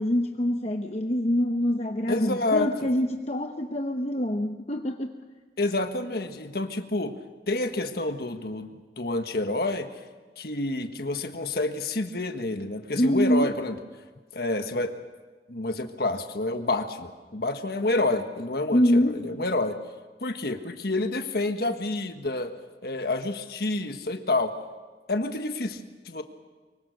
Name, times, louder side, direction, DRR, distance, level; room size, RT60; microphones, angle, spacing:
voice 1, 0.0-5.1 12.9-13.5 18.7-19.2, equal, 35° left, 4 dB, 0.9 m, -25 dB
voice 2, 2.1-2.9 5.6-7.2 7.5-8.7 9.0-9.9 10.4-13.7 14.3-14.9 15.5-19.8 20.2-22.5 22.8-24.5 25.1-26.2, left 2 dB, 60° left, 7 dB, 1.5 m, -28 dB
24.5 x 23.5 x 6.6 m, 1.4 s
head